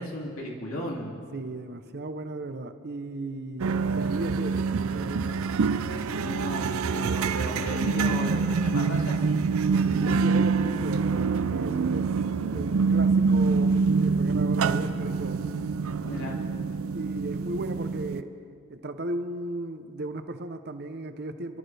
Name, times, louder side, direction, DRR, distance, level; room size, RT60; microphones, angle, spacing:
voice 1, 0.0-1.2 6.2-9.4 16.1-16.4, equal, 80° left, -2 dB, 2.7 m, -35 dB
voice 2, 1.3-5.4 7.0-7.4 7.7-8.2 9.7-15.4 16.1-16.2 16.9-18.3 18.7-21.6, right 2 dB, 50° right, 9 dB, 0.8 m, -36 dB
sound 1, 3.6-18.2, right 4 dB, 80° right, 0.5 m, -26 dB
26.5 x 12.5 x 3.4 m, 2.5 s
head